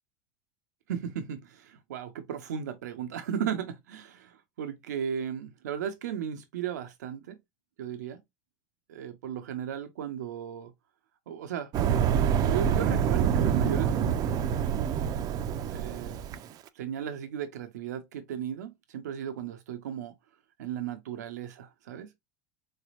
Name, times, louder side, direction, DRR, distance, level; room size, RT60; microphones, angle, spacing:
voice 1, 0.9-7.4 7.8-8.2 8.9-10.7 11.3-11.7 12.5-14.3 15.7-16.3 16.7-20.1 20.6-22.1, right 9 dB, 90° right, 0.7 m, -35 dB
sound 1, 11.7-16.4, right 8 dB, 45° right, 0.5 m, -26 dB
3.9 x 3.4 x 2.4 m
supercardioid pair, 105°, 9 cm